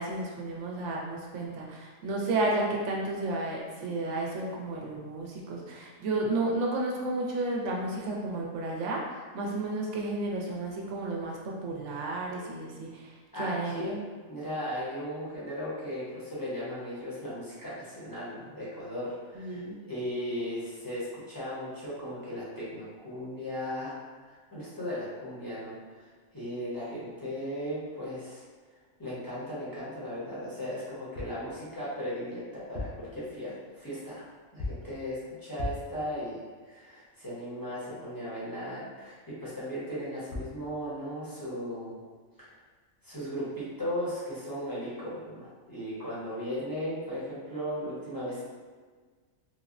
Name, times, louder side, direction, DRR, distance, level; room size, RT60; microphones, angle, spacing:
voice 1, 0.0-14.0 19.3-19.8, right 2 dB, 70° right, -2 dB, 0.9 m, -32 dB
voice 2, 13.3-19.6 19.9-24.0 24.3-25.8 26.3-28.4 29.0-34.2 34.5-36.4 36.6-42.0 42.4-42.5 43.0-48.4, equal, 20° left, -10 dB, 0.7 m, -36 dB
sound 1, 31.1-31.5 32.6-33.1 34.6-35.0 35.6-36.0 40.0-40.1 40.3-40.6, left 2 dB, 65° left, 0.5 m, -37 dB
3.3 x 2.0 x 2.5 m, 1.5 s
omnidirectional pair, 1.3 m